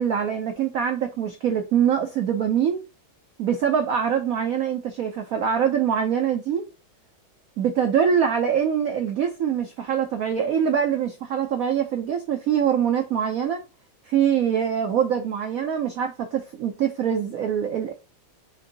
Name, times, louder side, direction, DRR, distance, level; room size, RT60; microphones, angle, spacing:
voice 1, 0.0-2.8 3.4-6.7 7.6-13.6 14.1-17.9, right 8 dB, 80° right, 0.7 m, -24 dB
6.4 x 2.6 x 2.7 m
omnidirectional pair, 2.2 m